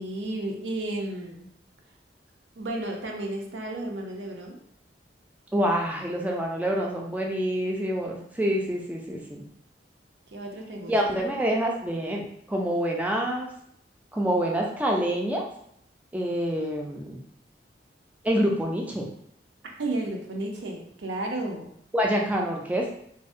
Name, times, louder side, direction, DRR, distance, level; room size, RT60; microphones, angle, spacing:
voice 1, 0.0-1.5 2.6-4.6 10.3-11.3 19.8-21.7, right 2 dB, 90° right, 1 dB, 0.5 m, -33 dB
voice 2, 5.5-9.4 10.9-13.5 14.1-15.4 16.1-17.2 18.2-19.1 21.9-22.9, equal, 10° right, 0 dB, 0.3 m, -26 dB
2.6 x 2.0 x 2.4 m, 0.68 s
head